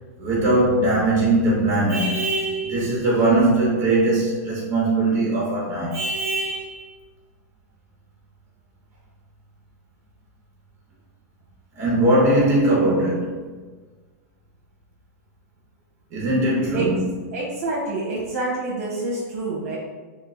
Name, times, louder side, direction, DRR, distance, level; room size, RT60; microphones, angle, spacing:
voice 1, 0.2-6.9 11.8-13.5 16.1-17.2, right 2 dB, 30° right, -4 dB, 1.2 m, -20 dB
voice 2, 17.3-19.8, right 2 dB, 65° right, -4 dB, 0.9 m, -27 dB
3.6 x 2.5 x 2.5 m, 1.4 s
supercardioid pair, 140°, 8 cm